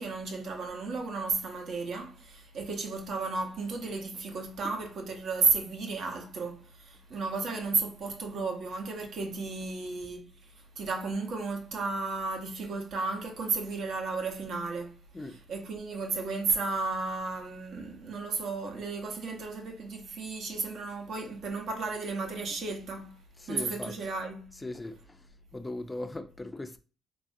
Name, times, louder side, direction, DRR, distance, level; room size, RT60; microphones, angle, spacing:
voice 1, 0.0-10.3 10.8-23.1 23.5-24.5, right 4 dB, 70° right, 0.8 m, -33 dB
voice 2, 23.4-23.9 24.6-24.9 25.5-26.8, left 2 dB, 15° left, 0.4 m, -38 dB
3.2 x 2.4 x 2.6 m
cardioid pair, 90°, 0 cm